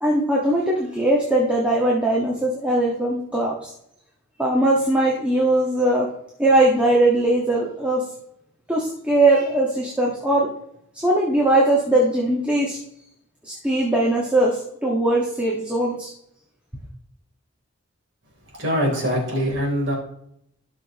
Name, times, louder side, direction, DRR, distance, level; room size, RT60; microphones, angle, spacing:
voice 1, 0.0-3.7 4.4-6.1 6.4-8.0 8.7-10.5 11.0-12.8 13.4-16.1, right 1 dB, 5° right, -4 dB, 1.5 m, -20 dB
voice 2, 18.6-19.9, equal, 60° right, -2 dB, 3.6 m, -23 dB
17.5 x 6.1 x 3.0 m, 0.73 s
head